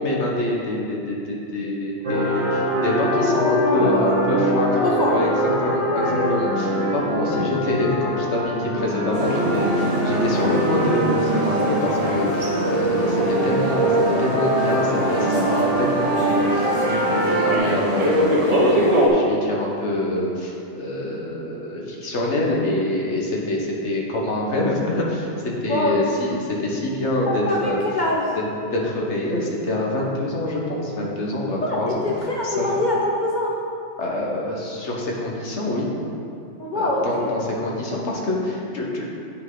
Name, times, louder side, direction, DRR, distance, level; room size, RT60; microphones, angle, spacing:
voice 1, 0.0-5.3 5.6-5.8 6.3-25.3 25.6-27.8 28.3-28.4 28.7-32.0 32.6-32.7 34.0-35.9 36.7-39.0, left 1 dB, 75° left, -2 dB, 1.5 m, -25 dB
sound 1, 2.0-17.6, right 1 dB, 90° right, 1.7 m, -23 dB
voice 2, 3.6-4.2 4.8-5.2 5.9-6.3 6.8-6.9 7.3-7.5 25.7-26.0 27.5-28.3 31.6-33.5 36.6-37.4, left 1 dB, 45° left, -3 dB, 0.8 m, -24 dB
sound 2, 9.1-19.1, equal, 35° right, 1.3 m, -25 dB
8.7 x 6.0 x 3.8 m, 2.6 s
omnidirectional pair, 1.2 m